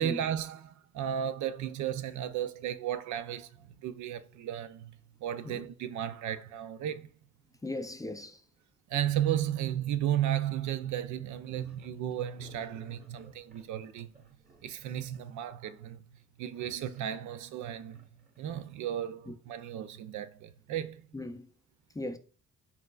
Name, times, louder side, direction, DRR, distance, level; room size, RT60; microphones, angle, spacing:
voice 1, 0.0-7.1 8.9-14.1 14.6-16.0 16.4-18.1 18.4-21.0, right 10 dB, 75° right, 0.5 m, -34 dB
voice 2, 7.6-8.4 19.3-19.4 21.1-21.5 21.9-22.2, left 2 dB, 10° left, 0.4 m, -38 dB
sound 1, 11.3-15.5 16.2-17.4 17.9-18.9, right 3 dB, 30° right, 1.3 m, -59 dB
4.4 x 4.0 x 2.4 m
cardioid pair, 90°, 30 cm